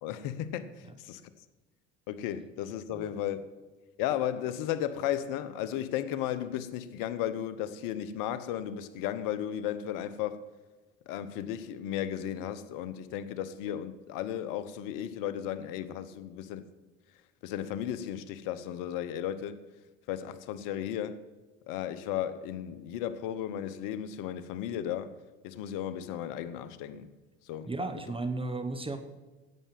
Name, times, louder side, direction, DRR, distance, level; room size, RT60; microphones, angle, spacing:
voice 1, 0.0-1.2 2.1-3.4 4.0-10.4 11.1-16.7 17.4-19.6 20.1-21.2 21.7-25.2 25.4-27.1 27.4-27.7, left 10 dB, 70° left, 1.1 m, -34 dB
voice 2, 27.7-29.0, right 2 dB, 15° right, 1.3 m, -34 dB
11.0 x 8.6 x 7.6 m
hypercardioid pair, 70°, 33 cm